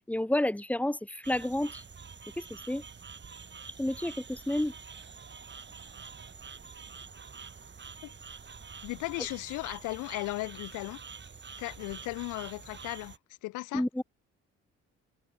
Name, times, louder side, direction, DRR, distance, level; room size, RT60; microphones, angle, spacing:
voice 1, 0.1-1.8 2.4-2.8 3.8-4.7 13.7-14.0, left 1 dB, 5° left, 2.4 m, -30 dB
sound 1, 1.2-13.2, right 5 dB, 40° right, 6.6 m, -47 dB
voice 2, 8.8-11.0 11.6-13.1 13.4-13.8, left 21 dB, 85° left, 5.1 m, -36 dB
supercardioid pair, 70°, 30 cm